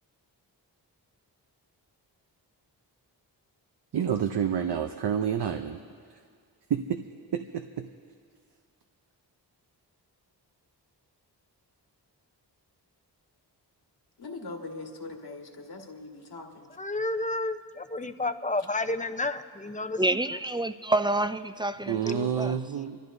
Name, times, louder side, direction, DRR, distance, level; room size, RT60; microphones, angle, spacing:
voice 1, 3.9-5.8 6.7-7.0 7.3-7.9 21.9-23.0, right 8 dB, 65° right, 0.7 m, -28 dB
voice 2, 14.2-16.7, left 3 dB, 60° left, 1.9 m, -41 dB
voice 3, 16.7-20.2, left 2 dB, 15° left, 0.7 m, -31 dB
voice 4, 20.0-22.5, right 2 dB, 10° right, 0.4 m, -28 dB
26.5 x 14.0 x 2.7 m
cardioid pair, 50°, 43 cm